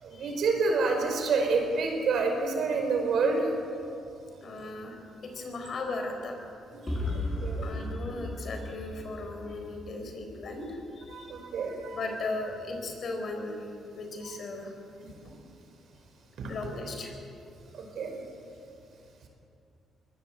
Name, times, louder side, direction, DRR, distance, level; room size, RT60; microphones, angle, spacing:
voice 1, 0.0-3.5 6.7-7.7 11.1-12.0 16.4-16.5 17.7-18.2, right 4 dB, 65° right, 3 dB, 5.0 m, -28 dB
voice 2, 4.4-5.0 5.2-6.4 7.6-11.3 11.9-13.6 13.9-14.7 16.5-17.1, left 2 dB, 55° left, 4 dB, 4.5 m, -37 dB
sound 1, 6.9-10.8, left 1 dB, 10° left, 5.4 m, -35 dB
22.5 x 17.5 x 8.0 m, 2.6 s
cardioid pair, 90°, 0 cm